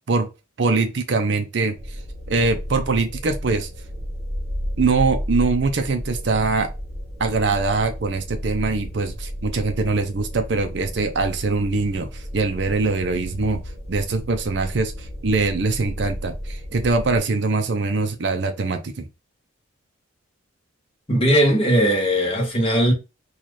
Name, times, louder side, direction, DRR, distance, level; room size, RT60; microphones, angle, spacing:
voice 1, 0.6-1.8 2.3-3.7 4.8-6.7 7.2-13.6 13.9-19.1, right 3 dB, 55° right, 0.5 m, -23 dB
sound 1, 1.8-17.2, equal, 30° right, 1.0 m, -32 dB
voice 2, 21.1-22.9, equal, 30° left, 1.2 m, -18 dB
4.1 x 2.4 x 3.1 m
head